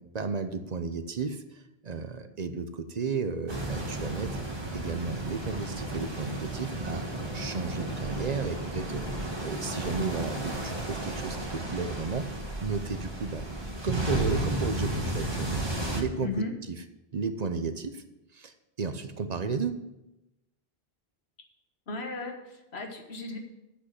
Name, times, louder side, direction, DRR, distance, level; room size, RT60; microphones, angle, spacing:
voice 1, 0.0-1.4 1.8-4.3 4.7-7.0 7.3-12.3 12.6-13.5 13.8-15.6 15.9-16.3 17.1-18.0 18.3-19.8, right 4 dB, 45° right, 9 dB, 0.7 m, -33 dB
sound 1, 3.5-16.0, right 2 dB, 25° right, 1.6 m, -33 dB
voice 2, 16.2-16.5 21.9-23.4, left 3 dB, 85° left, 3 dB, 1.6 m, -35 dB
8.1 x 6.3 x 7.6 m, 0.94 s
omnidirectional pair, 1.1 m